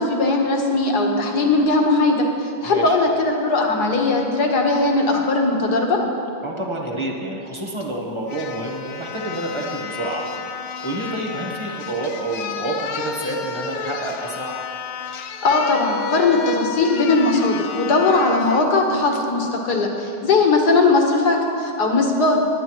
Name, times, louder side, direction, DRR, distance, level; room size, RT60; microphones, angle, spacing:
voice 1, 0.0-6.0 15.4-22.4, left 3 dB, 55° left, 1 dB, 1.7 m, -19 dB
voice 2, 2.6-3.0 6.4-10.3 10.8-14.5, right 2 dB, 25° right, -1 dB, 0.7 m, -28 dB
sound 1, 7.8-7.9 8.3-18.6 19.1-19.3, left 7 dB, 85° left, 1.6 m, -31 dB
20.5 x 9.9 x 3.1 m, 2.6 s
omnidirectional pair, 2.3 m